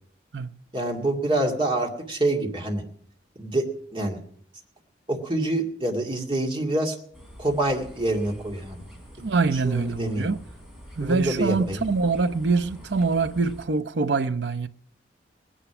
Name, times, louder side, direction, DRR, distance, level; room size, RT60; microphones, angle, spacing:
voice 1, 0.7-2.8 3.4-4.2 5.1-7.0 7.4-8.8 9.5-10.3 11.0-11.8, right 1 dB, 25° right, 2.2 m, -26 dB
sound 1, 7.1-13.7, equal, 5° right, 3.5 m, -45 dB
voice 2, 9.2-10.4 11.0-14.7, right 4 dB, 65° right, 0.6 m, -24 dB
19.0 x 10.0 x 6.0 m
head